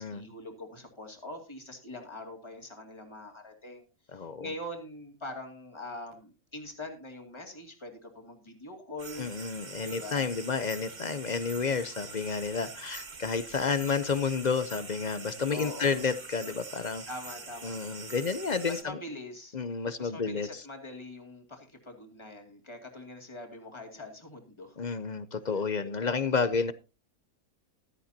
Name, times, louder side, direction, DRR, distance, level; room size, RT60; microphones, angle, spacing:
voice 1, 0.0-3.8 4.1-9.3 9.8-10.3 15.5-16.1 17.1-17.8 18.7-19.6 20.0-24.8 25.5-26.2, left 1 dB, 20° left, 2 dB, 2.4 m, -43 dB
voice 2, 4.1-4.5 9.2-17.0 17.6-19.0 19.5-20.6 24.8-26.7, left 5 dB, 45° left, 13 dB, 0.6 m, -30 dB
sound 1, 9.0-18.8, right 4 dB, 35° right, 1.2 m, -44 dB
14.5 x 13.0 x 2.8 m, 0.30 s
omnidirectional pair, 1.5 m